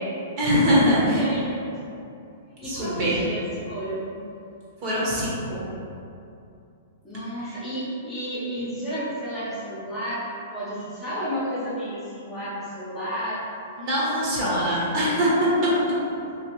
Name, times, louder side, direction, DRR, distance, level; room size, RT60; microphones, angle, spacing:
voice 1, 0.4-1.2 2.7-3.2 4.8-5.6 7.4-7.5 13.8-15.7, equal, 40° right, -7 dB, 1.0 m, -22 dB
voice 2, 1.1-1.5 2.6-4.1 7.0-13.4, equal, 15° left, -10 dB, 0.9 m, -32 dB
2.9 x 2.9 x 3.0 m, 2.6 s
hypercardioid pair, 155°, 0 cm